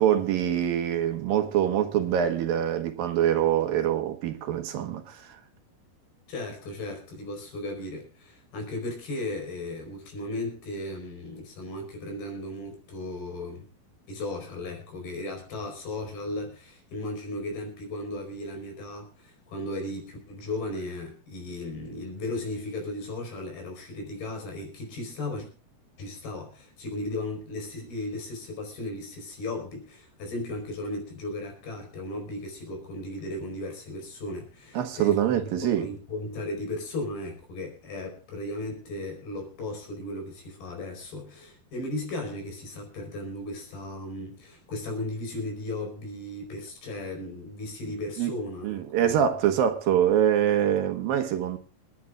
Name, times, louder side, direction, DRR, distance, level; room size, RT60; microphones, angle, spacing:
voice 1, 0.0-5.4 34.7-35.9 48.2-48.3 48.6-51.6, right 10 dB, 70° right, 3.0 m, -24 dB
voice 2, 6.3-13.7 14.1-25.5 26.0-49.2, left 2 dB, 80° left, 6.6 m, -36 dB
28.0 x 10.5 x 2.4 m
omnidirectional pair, 4.3 m